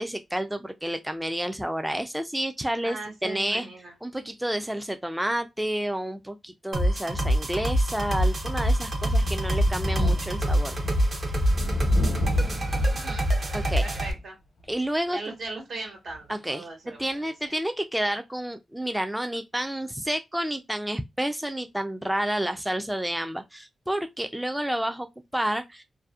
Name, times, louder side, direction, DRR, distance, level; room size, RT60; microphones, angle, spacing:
voice 1, 0.0-3.0 3.2-3.7 4.0-10.8 13.5-13.8 14.7-15.2 16.3-16.7 17.0-25.1 25.3-25.8, right 1 dB, 5° right, 0.3 m, -30 dB
voice 2, 2.8-3.9 12.9-13.3 13.8-14.3 15.1-17.5, right 2 dB, 75° right, 1.2 m, -39 dB
sound 1, 6.7-14.1, equal, 55° right, 0.7 m, -25 dB
Thunder, 9.1-14.2 14.7-14.8 16.1-16.2, left 1 dB, 80° left, 0.7 m, -32 dB
2.6 x 2.0 x 2.3 m
cardioid pair, 60°, 0 cm